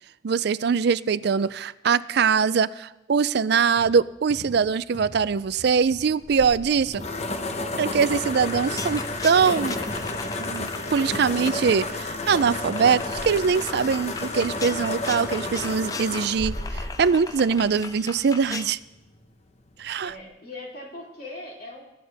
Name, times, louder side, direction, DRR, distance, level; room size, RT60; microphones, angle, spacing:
voice 1, 0.2-7.1 7.8-9.8 10.4-18.8 19.8-20.1, right 6 dB, 60° right, 16 dB, 0.4 m, -23 dB
sound 1, 3.8-11.6, left 1 dB, 80° left, 1.6 m, -45 dB
sound 2, 6.2-18.1, left 2 dB, 35° left, 0.9 m, -31 dB
sound 3, 8.3-18.7, left 4 dB, 20° left, 0.5 m, -39 dB
voice 2, 20.0-21.8, left 2 dB, 55° left, -3 dB, 3.5 m, -40 dB
19.5 x 11.0 x 3.5 m, 0.98 s
head